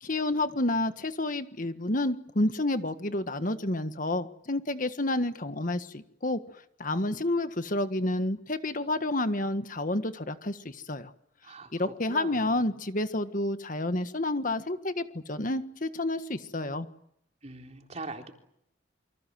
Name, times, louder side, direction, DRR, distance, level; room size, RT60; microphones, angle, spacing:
voice 1, 0.0-11.1 11.7-16.9, left 1 dB, 45° left, 10 dB, 1.6 m, -30 dB
voice 2, 11.4-12.7 17.4-18.3, right 2 dB, 35° right, 4 dB, 3.8 m, -42 dB
28.5 x 25.0 x 7.8 m, 0.74 s
head